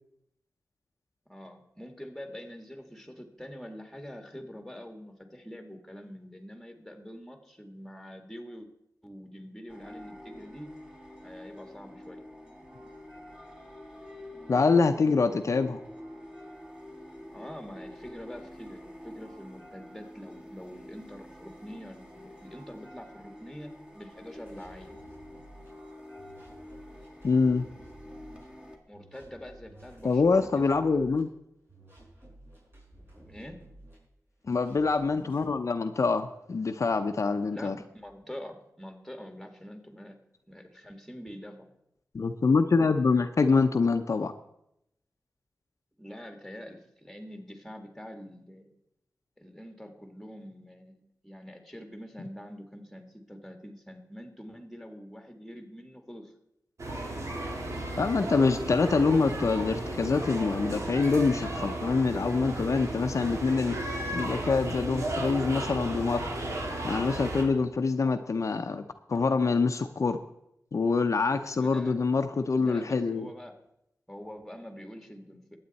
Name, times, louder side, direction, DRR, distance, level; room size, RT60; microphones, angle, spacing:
voice 1, 1.3-8.7 9.0-10.7 11.2-12.2 17.3-25.0 28.9-30.7 33.3-33.6 37.5-40.2 40.5-41.7 46.0-48.8 49.4-56.3 71.5-72.0 72.6-73.6 74.1-75.6, equal, 5° left, 4 dB, 1.9 m, -45 dB
sound 1, 9.7-28.8, left 1 dB, 15° right, 2.3 m, -47 dB
voice 2, 14.5-15.8 27.2-27.6 30.0-31.3 34.5-37.8 42.1-44.3 58.0-63.8 64.1-66.2 66.8-70.2 70.7-73.3, left 4 dB, 60° left, 7 dB, 0.7 m, -25 dB
sound 2, 24.5-25.7 26.2-28.4 28.9-31.2 31.7-34.0 34.4-35.5, right 1 dB, 40° right, 6.2 m, -53 dB
sound 3, 56.8-67.4, right 1 dB, 60° right, 2.4 m, -34 dB
21.0 x 8.7 x 4.1 m, 0.80 s
wide cardioid pair, 95°, 6 cm